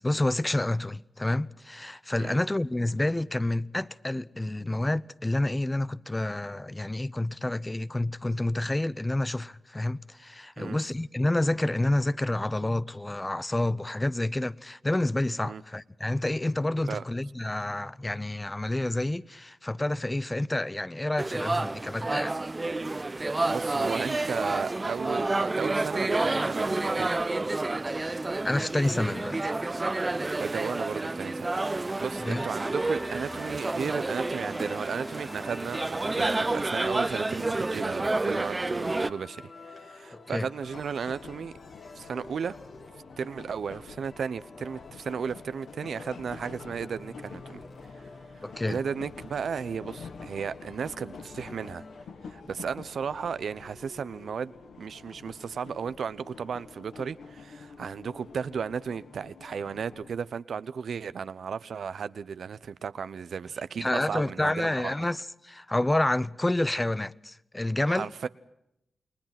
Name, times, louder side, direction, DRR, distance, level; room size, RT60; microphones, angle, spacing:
voice 1, 0.0-22.3 27.9-29.5 32.2-32.4 40.3-40.5 48.4-48.8 63.8-68.1, left 1 dB, 20° left, 0.8 m, -29 dB
sound 1, 21.2-39.1, right 2 dB, 30° right, 1.0 m, -29 dB
voice 2, 23.4-27.1 30.4-41.5 41.9-42.6 43.2-47.6 48.0-48.1 48.3-51.8 52.2-65.1 67.9-68.3, right 6 dB, 75° right, 0.8 m, -35 dB
sound 2, 32.1-52.0, left 2 dB, 55° left, 3.4 m, -48 dB
sound 3, 40.6-60.1, left 5 dB, 85° left, 1.9 m, -48 dB
29.0 x 20.0 x 5.9 m
cardioid pair, 50°, 0 cm